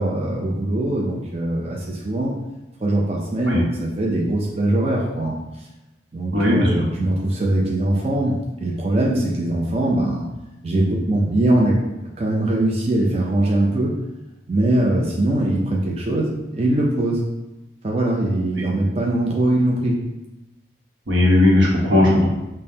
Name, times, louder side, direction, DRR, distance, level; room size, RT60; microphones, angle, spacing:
voice 1, 0.0-2.4 2.8-5.4 6.1-10.3 10.6-11.8 12.2-14.0 14.5-17.3 17.8-20.0, right 1 dB, 35° right, -3 dB, 0.4 m, -21 dB
voice 2, 6.3-6.7 21.1-22.2, left 1 dB, 85° right, -3 dB, 1.0 m, -16 dB
5.2 x 2.1 x 2.7 m, 1.0 s
head